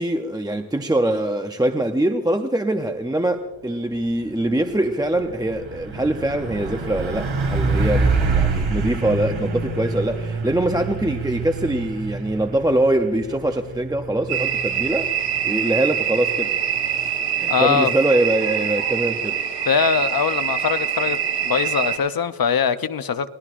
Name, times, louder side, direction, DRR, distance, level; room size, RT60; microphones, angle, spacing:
voice 1, 0.0-15.1 15.4-16.5 16.9-17.1 17.4-19.4, right 1 dB, 10° right, 5 dB, 0.5 m, -23 dB
Truck, 3.9-4.2 4.5-17.1, right 3 dB, 85° right, 2.6 m, -27 dB
sound 1, 14.3-22.0, right 9 dB, 60° right, 3.3 m, -24 dB
voice 2, 17.5-17.9 19.7-23.3, left 6 dB, 50° left, 12 dB, 0.7 m, -22 dB
27.5 x 18.0 x 2.5 m, 1.2 s
wide cardioid pair, 145°, 46 cm